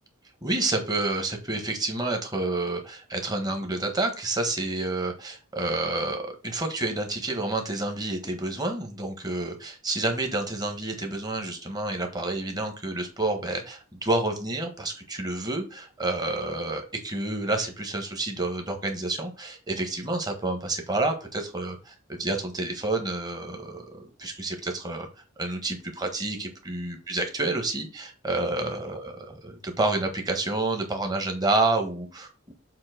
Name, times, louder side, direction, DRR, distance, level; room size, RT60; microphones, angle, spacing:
voice 1, 0.4-25.1 25.4-29.1 29.5-32.5, right 2 dB, 20° right, 4 dB, 1.4 m, -29 dB
7.5 x 2.9 x 5.9 m, 0.34 s
head